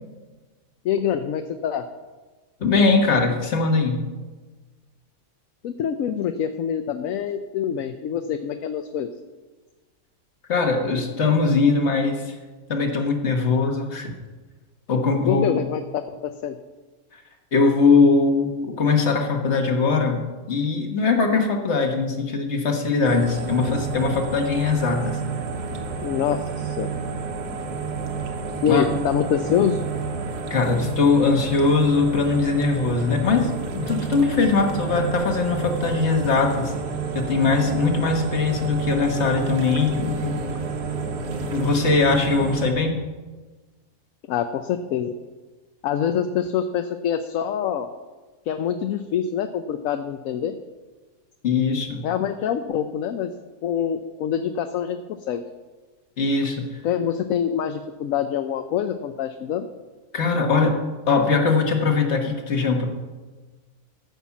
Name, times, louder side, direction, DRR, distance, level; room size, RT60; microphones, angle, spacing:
voice 1, 0.8-1.9 5.6-9.1 15.3-16.6 23.6-23.8 26.0-26.9 28.6-29.8 44.3-45.1 45.8-47.9 48.5-50.6 52.0-53.3 53.6-55.4 56.8-59.7, left 8 dB, 70° left, 8 dB, 0.9 m, -25 dB
voice 2, 2.6-4.0 10.5-12.3 12.7-14.1 14.9-15.6 17.5-25.2 28.7-28.8 30.5-36.7 37.1-40.4 41.4-43.0 51.4-52.1 56.2-56.7 60.1-60.8 61.1-62.9, left 4 dB, 45° left, 3 dB, 1.6 m, -21 dB
sound 1, 23.0-42.7, right 5 dB, 90° right, 1.8 m, -30 dB
13.5 x 5.6 x 7.2 m, 1.3 s
omnidirectional pair, 1.6 m